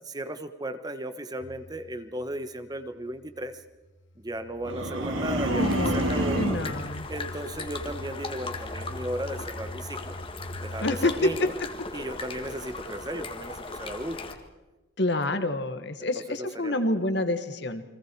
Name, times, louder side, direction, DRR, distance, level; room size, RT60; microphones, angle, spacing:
voice 1, 0.0-3.6 4.2-6.4 7.1-10.2 10.6-11.5 11.9-14.2 15.3-15.5 16.0-16.9, right 1 dB, 20° right, 10 dB, 1.1 m, -35 dB
sound 1, 1.4-11.4, left 1 dB, 75° left, 2.1 m, -43 dB
sound 2, 4.6-6.8, right 1 dB, 80° right, 3.4 m, -28 dB
voice 2, 5.4-7.1 10.8-11.5 15.0-17.8, left 2 dB, 55° left, 9 dB, 1.6 m, -27 dB
sound 3, 5.6-14.3, left 3 dB, 25° left, 1.8 m, -38 dB
30.0 x 23.0 x 4.7 m, 1.1 s
head